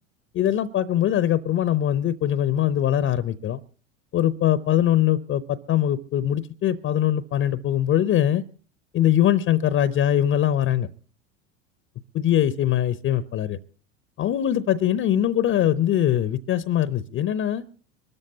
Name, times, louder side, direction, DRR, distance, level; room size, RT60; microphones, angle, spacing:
voice 1, 0.3-3.6 4.1-8.4 8.9-10.9 12.1-13.6 14.2-17.6, left 11 dB, 30° left, 15 dB, 0.7 m, -22 dB
24.5 x 13.5 x 2.8 m, 0.41 s
hypercardioid pair, 80°, 40 cm